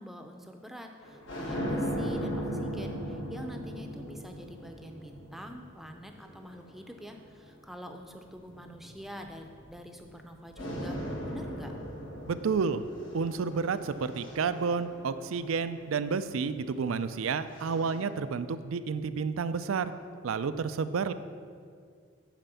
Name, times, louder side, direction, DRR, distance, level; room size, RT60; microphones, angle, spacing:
voice 1, 0.0-11.7, equal, ahead, 4 dB, 0.5 m, -46 dB
sound 1, 1.0-7.6 8.4-10.2 10.6-15.9 16.9-18.0, equal, 65° left, 1.4 m, -38 dB
voice 2, 12.3-12.8 13.1-19.9 20.2-21.1, right 5 dB, 85° right, 13 dB, 0.4 m, -30 dB
9.1 x 5.1 x 6.8 m, 2.2 s
head